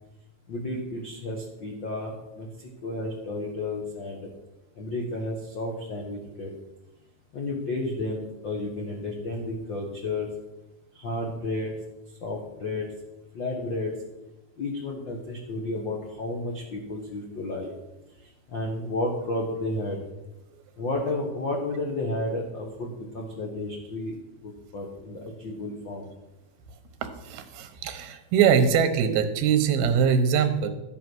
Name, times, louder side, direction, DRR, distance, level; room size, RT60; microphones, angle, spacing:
voice 1, 0.5-4.3 4.8-6.5 7.3-10.3 10.9-11.7 12.2-12.9 13.3-13.9 14.6-17.7 18.5-20.0 20.8-24.1 24.4-26.1, left 2 dB, 70° left, 0 dB, 1.1 m, -32 dB
voice 2, 27.0-30.7, right 7 dB, 85° right, 8 dB, 3.1 m, -22 dB
12.5 x 8.4 x 6.2 m, 0.99 s
omnidirectional pair, 4.3 m